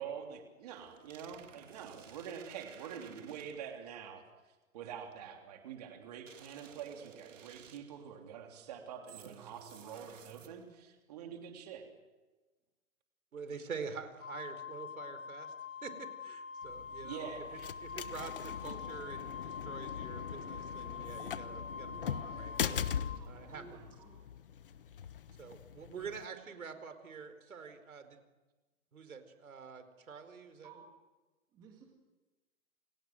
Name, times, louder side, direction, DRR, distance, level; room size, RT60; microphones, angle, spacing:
voice 1, 0.0-4.2 4.7-11.9 17.0-17.4 22.3-23.1, right 8 dB, 30° right, 3 dB, 3.2 m, -46 dB
sound 1, 0.7-3.8 6.3-8.1 9.1-10.8, right 8 dB, 60° right, 2.1 m, -55 dB
voice 2, 13.3-15.5 15.8-17.3 17.8-22.8 23.3-23.9 25.4-28.2 28.9-30.7, right 5 dB, 80° right, 9 dB, 4.8 m, -46 dB
Wind instrument woodwind instrument, 14.2-23.2, left 6 dB, 65° left, 6.6 m, -45 dB
sound 2, 16.6-26.2, left 8 dB, 40° left, 1.1 m, -41 dB
voice 3, 23.2-24.2 30.6-30.9 31.5-31.9, right 5 dB, 10° right, 1 dB, 2.0 m, -56 dB
29.5 x 24.5 x 7.9 m, 1.2 s
hypercardioid pair, 175°, 42 cm